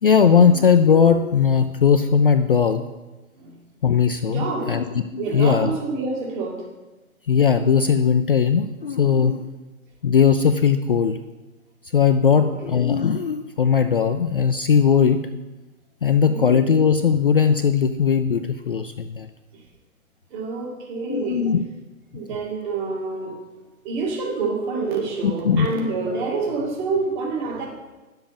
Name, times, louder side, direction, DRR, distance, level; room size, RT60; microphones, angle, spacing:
voice 1, 0.0-2.8 3.8-4.8 5.1-5.7 7.3-9.4 10.0-11.2 11.9-15.2 16.0-19.3 21.1-21.6 25.2-25.7, left 7 dB, 40° left, 8 dB, 0.4 m, -18 dB
voice 2, 4.2-4.7 5.2-6.7 12.3-12.5 16.2-16.6 19.5-19.6 20.3-21.5 22.1-23.4 23.8-27.7, right 4 dB, 35° right, 0 dB, 2.4 m, -27 dB
10.5 x 7.2 x 5.3 m, 1.1 s
hypercardioid pair, 145°, 43 cm